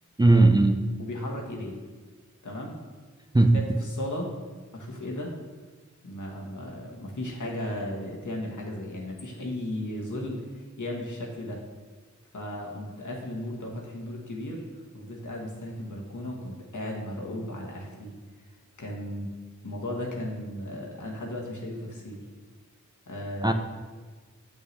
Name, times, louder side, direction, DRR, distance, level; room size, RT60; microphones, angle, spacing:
voice 1, 0.2-0.8 3.3-3.6 23.4-23.5, right 2 dB, 15° right, 5 dB, 0.4 m, -18 dB
voice 2, 1.0-1.8 2.4-2.8 3.5-4.3 4.7-5.3 6.0-11.6 12.3-14.6 14.9-18.1 18.8-19.3 19.6-22.2 23.1-23.5, left 1 dB, 75° left, -2 dB, 1.3 m, -35 dB
7.6 x 5.5 x 3.3 m, 1.4 s
wide cardioid pair, 50°, 30 cm